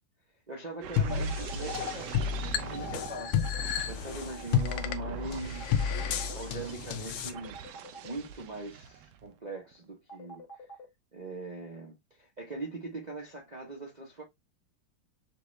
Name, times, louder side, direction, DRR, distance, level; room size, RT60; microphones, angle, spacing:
voice 1, 0.5-5.9 6.3-7.6 8.0-10.4 11.1-14.2, right 2 dB, 45° right, 0.5 m, -41 dB
sound 1, 0.8-9.3 9.7-9.9, right 8 dB, 75° right, 1.1 m, -43 dB
sound 2, 1.0-7.3, left 8 dB, 80° left, 1.3 m, -31 dB
sound 3, 1.1-1.8 2.8-3.6 5.6-6.3 7.3-8.1 10.1-10.8, right 1 dB, 60° left, 1.6 m, -46 dB
5.6 x 2.3 x 3.1 m
omnidirectional pair, 2.1 m